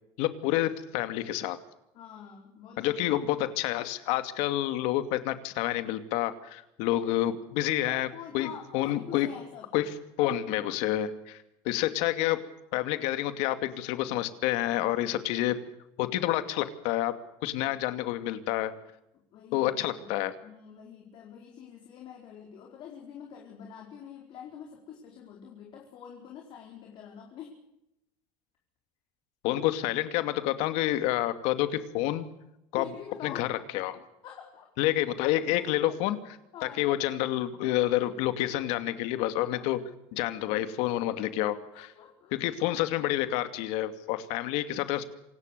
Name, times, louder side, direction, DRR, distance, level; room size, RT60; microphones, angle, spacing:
voice 1, 0.2-1.6 2.8-8.1 8.3-8.5 8.7-9.3 9.7-9.8 10.2-11.4 11.6-12.4 12.7-15.6 16.0-17.1 17.4-18.7 19.5-20.3 29.4-32.3 32.7-32.8 33.2-34.0 34.8-36.2 36.6-39.8 40.1-41.9 42.3-45.1, left 14 dB, 65° left, 10 dB, 2.5 m, -28 dB
voice 2, 1.9-3.0 7.9-9.8 19.3-20.1 20.4-27.6 29.6-29.7 32.7-33.5 34.2-34.7 35.6-36.0 36.5-36.9 39.5-39.8 41.7-42.4, left 8 dB, 45° left, 0 dB, 4.6 m, -46 dB
27.0 x 18.5 x 6.8 m, 0.83 s
cardioid pair, 155°, 12 cm